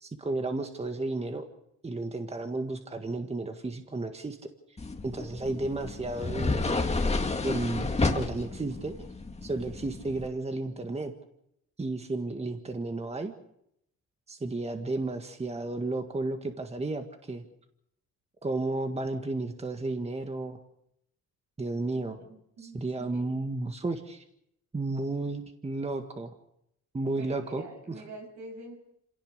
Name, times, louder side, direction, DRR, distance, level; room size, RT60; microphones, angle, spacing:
voice 1, 0.0-1.4 1.8-4.4 5.0-6.8 7.4-9.1 9.4-11.1 11.8-13.3 14.3-17.4 18.4-20.6 21.6-22.2 22.6-24.2 24.7-26.3 26.9-27.6, right 2 dB, 20° right, 6 dB, 1.7 m, -33 dB
sound 1, 4.8-10.3, left 3 dB, 20° left, 2.0 m, -31 dB
voice 2, 21.9-22.8 23.1-23.3 27.2-28.8, right 2 dB, 70° right, 3 dB, 7.2 m, -46 dB
27.0 x 17.5 x 6.7 m, 0.78 s
cardioid pair, 90°, 30 cm